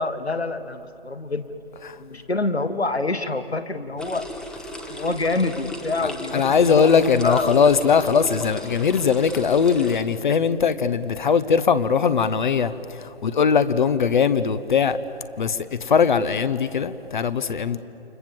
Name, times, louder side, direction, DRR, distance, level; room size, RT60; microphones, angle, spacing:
voice 1, 0.0-1.4 2.0-4.3 4.9-7.6, left 3 dB, 90° left, 1.8 m, -26 dB
sound 1, 4.0-10.0, left 1 dB, ahead, 1.1 m, -36 dB
voice 2, 6.0-15.0 15.4-17.8, left 6 dB, 50° left, 1.1 m, -20 dB
29.0 x 26.0 x 7.6 m
figure-of-eight pair, 140°, 31 cm